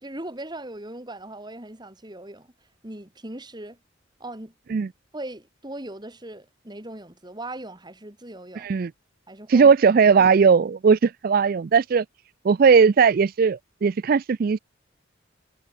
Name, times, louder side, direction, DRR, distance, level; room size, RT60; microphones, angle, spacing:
voice 1, 0.0-2.5 2.8-3.8 4.2-4.5 5.1-8.7 9.3-9.7, right 1 dB, 20° right, 2.7 m, -39 dB
voice 2, 8.6-8.9 9.5-12.0 12.4-14.6, right 5 dB, 50° right, 0.4 m, -18 dB
head